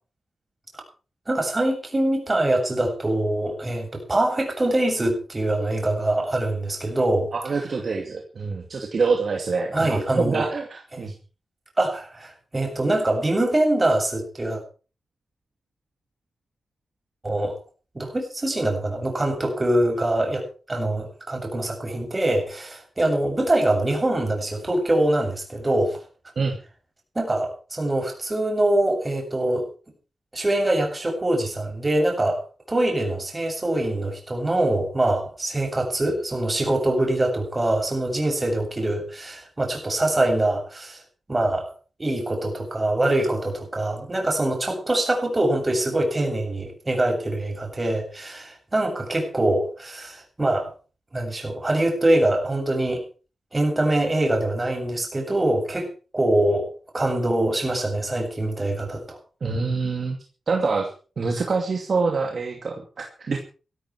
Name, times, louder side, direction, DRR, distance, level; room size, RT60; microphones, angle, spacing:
voice 1, 1.3-7.3 9.7-10.5 10.9-11.0 11.8-14.6 17.2-17.5 17.9-26.0 27.1-29.7 30.3-32.4 32.7-41.0 41.3-41.7 42.0-50.7 51.1-53.0 53.5-55.9 56.1-59.2, right 1 dB, 25° right, 2 dB, 7.8 m, -24 dB
voice 2, 7.3-11.1 26.4-26.6 59.4-60.2 60.5-60.9 61.2-63.4, right 4 dB, 55° right, 3 dB, 2.4 m, -25 dB
16.0 x 14.5 x 4.8 m, 0.37 s
wide cardioid pair, 90°, 0 cm